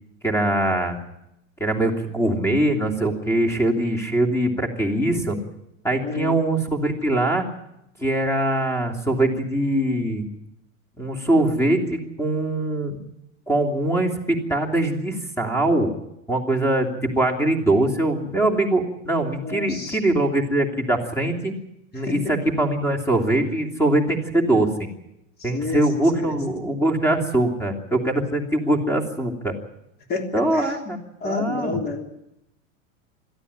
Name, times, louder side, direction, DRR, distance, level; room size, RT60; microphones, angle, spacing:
voice 1, 0.2-1.0 1.6-5.4 5.8-7.4 8.0-10.3 11.0-13.0 13.5-15.9 16.3-21.5 21.9-24.9 25.4-29.5 30.3-31.8, right 1 dB, 5° left, 3 dB, 3.0 m, -22 dB
voice 2, 6.0-6.4 19.4-20.0 22.0-22.4 25.4-26.3 30.1-30.7 31.2-32.0, left 3 dB, 25° left, 4 dB, 3.4 m, -30 dB
21.5 x 14.5 x 9.9 m, 0.84 s
supercardioid pair, 145°, 40 cm